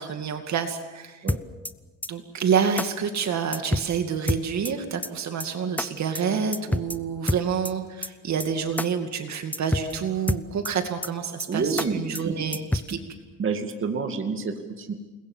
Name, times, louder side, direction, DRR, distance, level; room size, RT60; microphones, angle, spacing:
voice 1, 0.0-1.3 2.1-13.0, right 7 dB, 55° right, 6 dB, 2.4 m, -28 dB
sound 1, 1.3-1.7 2.0-2.1 2.4-2.5 2.8-2.9 3.1-3.2 3.5-3.9 4.3-4.7 5.0-5.1 5.4-5.5 5.8-5.9 6.1-6.2 6.5-7.0 7.3-7.7 8.0-8.1 8.4-8.5 8.8-8.9 9.1-9.2 9.5-9.9 10.3-10.7 11.0-11.1 11.4-11.5 11.8-11.9 12.1-12.2 12.5-12.9, left 1 dB, 5° left, 0.7 m, -27 dB
voice 2, 11.5-12.3 12.9-13.0 13.4-14.9, right 5 dB, 40° right, 5 dB, 2.4 m, -28 dB
28.5 x 21.0 x 7.4 m, 1.2 s
cardioid pair, 135°, 32 cm